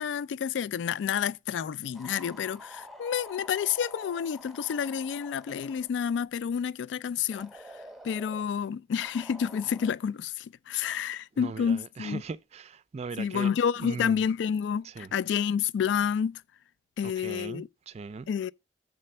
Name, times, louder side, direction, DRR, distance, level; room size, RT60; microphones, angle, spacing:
voice 1, 0.0-7.6 8.0-12.2 13.2-16.4 17.0-17.7 18.3-18.5, left 7 dB, 80° left, 0.3 m, -29 dB
sound 1, 1.9-5.9 7.3-8.5 9.0-9.9, equal, ahead, 0.8 m, -48 dB
voice 2, 11.4-13.5 13.8-14.2 14.8-15.1 17.0-18.3, right 4 dB, 35° right, 0.4 m, -39 dB
6.8 x 4.2 x 6.5 m
head